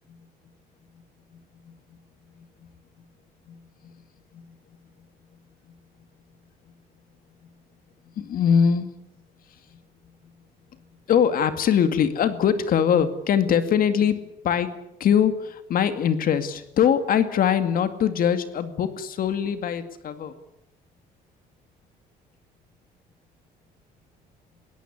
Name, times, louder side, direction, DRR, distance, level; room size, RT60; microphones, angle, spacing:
voice 1, 8.2-8.9 9.5-9.8 11.1-14.2 14.4-20.4, left 8 dB, 55° left, 11 dB, 2.2 m, -22 dB
22.0 x 17.5 x 9.7 m, 0.81 s
cardioid pair, 110°, 17 cm